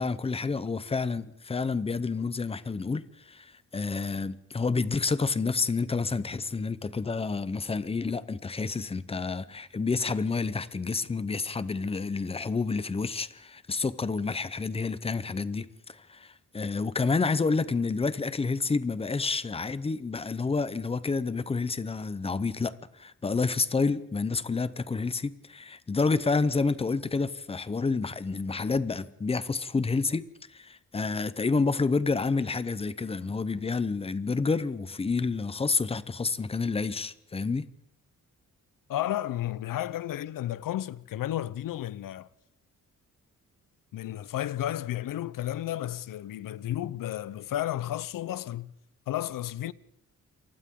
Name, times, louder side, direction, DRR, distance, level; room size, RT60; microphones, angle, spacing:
voice 1, 0.0-37.7, left 4 dB, 20° left, 0.7 m, -29 dB
voice 2, 38.9-42.3 43.9-48.7 49.1-49.7, left 13 dB, 85° left, 0.7 m, -32 dB
29.0 x 24.0 x 3.8 m
wide cardioid pair, 170°, 32 cm